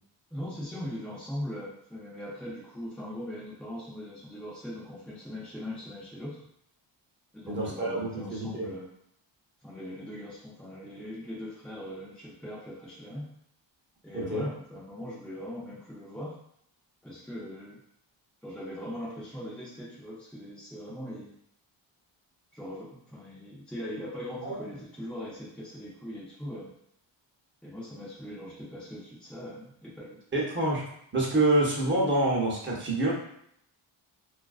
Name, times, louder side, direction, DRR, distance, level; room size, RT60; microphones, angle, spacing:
voice 1, 0.3-6.4 7.3-8.9 9.6-13.2 14.0-16.4 17.0-17.8 18.4-21.3 22.5-26.7 27.6-30.2, equal, ahead, -8 dB, 0.5 m, -40 dB
voice 2, 7.5-8.7 14.1-14.5 24.4-24.5 30.3-30.8 31.1-33.1, right 2 dB, 25° right, -4 dB, 0.8 m, -27 dB
2.4 x 2.2 x 2.3 m, 0.70 s
cardioid pair, 80°, 48 cm